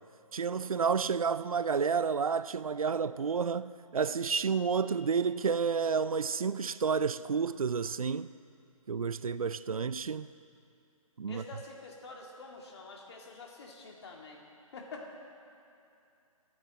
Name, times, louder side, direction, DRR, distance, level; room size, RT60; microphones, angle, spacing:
voice 1, 0.3-8.3 8.9-10.3 11.2-11.4, right 6 dB, 75° right, 0.5 m, -30 dB
voice 2, 11.3-14.4 14.7-15.2, left 3 dB, 45° left, 2.4 m, -47 dB
28.5 x 9.6 x 4.2 m
figure-of-eight pair, 135°, 18 cm